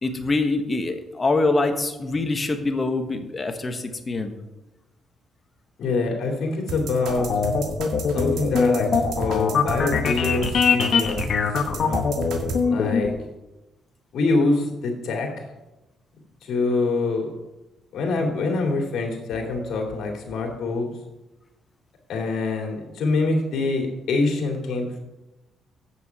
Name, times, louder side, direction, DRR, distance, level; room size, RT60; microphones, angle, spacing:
voice 1, 0.0-4.3, left 3 dB, 30° left, 6 dB, 1.2 m, -24 dB
voice 2, 5.8-7.3 8.1-11.4 11.7-12.1 12.6-13.1 14.1-15.4 16.4-17.3 17.9-20.9 22.1-25.0, left 3 dB, 75° left, 1 dB, 2.6 m, -25 dB
sound 1, 6.7-12.6, right 3 dB, 75° right, 1.6 m, -33 dB
sound 2, 7.1-13.1, left 5 dB, 55° left, 1.2 m, -22 dB
8.1 x 7.1 x 5.8 m, 1.0 s
cardioid pair, 90°, 0 cm